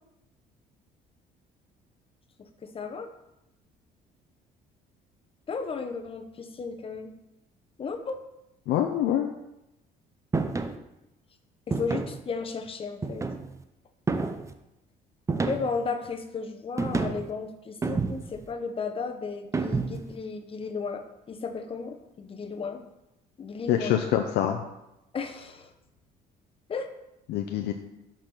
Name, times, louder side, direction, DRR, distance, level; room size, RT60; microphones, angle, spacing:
voice 1, 2.4-3.1 5.5-7.1 7.8-8.2 11.7-13.3 15.5-21.0 21.3-22.8 23.4-24.0 25.1-25.7 26.7-26.9, left 4 dB, 35° left, 6 dB, 0.9 m, -34 dB
voice 2, 8.7-9.3 23.7-24.6 27.3-27.7, left 10 dB, 80° left, 5 dB, 0.6 m, -25 dB
sound 1, 10.3-10.8 11.7-12.2 13.0-13.6 14.1-14.5 15.3-15.9 16.8-17.3 17.8-18.4 19.5-20.1, right 3 dB, 15° right, 0.6 m, -29 dB
6.0 x 5.1 x 6.0 m, 0.90 s
cardioid pair, 110°, 17 cm